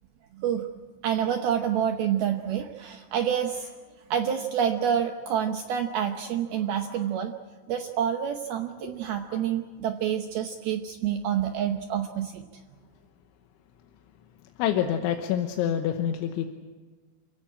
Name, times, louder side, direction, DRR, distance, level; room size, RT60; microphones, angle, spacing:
voice 1, 0.4-0.7 1.0-3.7 4.1-7.3 7.7-12.4, right 9 dB, 80° right, 5 dB, 2.2 m, -28 dB
voice 2, 14.6-16.5, left 10 dB, 75° left, 5 dB, 3.3 m, -27 dB
28.5 x 16.5 x 8.8 m, 1.4 s
omnidirectional pair, 5.8 m